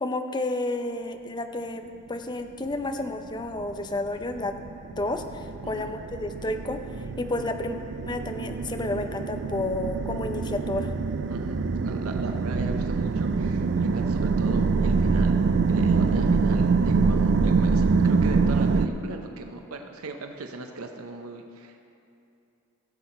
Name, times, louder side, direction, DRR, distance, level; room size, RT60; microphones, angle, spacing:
voice 1, 0.0-4.6 4.9-6.8 7.2-7.8 8.1-10.9, left 2 dB, 20° left, 6 dB, 0.5 m, -31 dB
sound 1, 3.4-18.9, right 4 dB, 55° right, 0.4 m, -25 dB
voice 2, 5.6-5.9 11.3-21.9, right 2 dB, 90° right, 4 dB, 0.7 m, -38 dB
15.5 x 7.9 x 4.2 m, 2.6 s
head